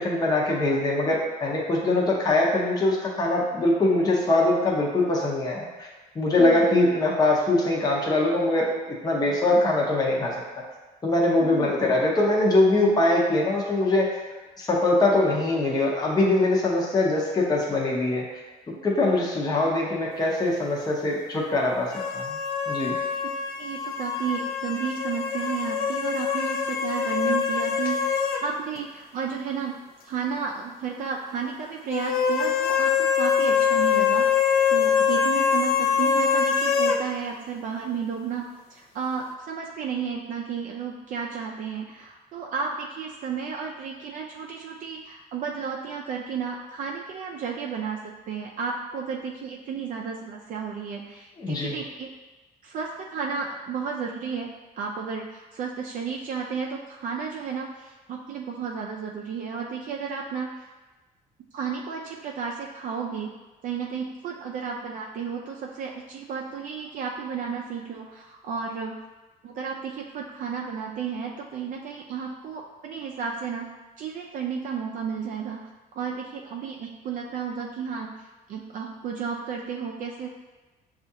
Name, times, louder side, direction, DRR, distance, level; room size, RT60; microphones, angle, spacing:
voice 1, 0.0-5.9 6.1-10.3 11.0-14.1 14.6-18.2 18.8-22.4 22.7-23.0 51.4-51.8, left 2 dB, 25° left, -2 dB, 0.7 m, -22 dB
voice 2, 11.4-11.8 23.6-29.8 30.0-52.1 52.6-54.5 54.8-60.7 61.5-63.3 63.6-69.0 69.4-73.7 74.0-75.7 76.0-80.3, right 6 dB, 50° right, -1 dB, 0.4 m, -33 dB
sound 1, 21.9-28.5 28.8-28.9 31.9-37.0, left 6 dB, 65° left, 0.4 m, -24 dB
6.2 x 2.4 x 2.7 m, 1.2 s
cardioid pair, 110°, 17 cm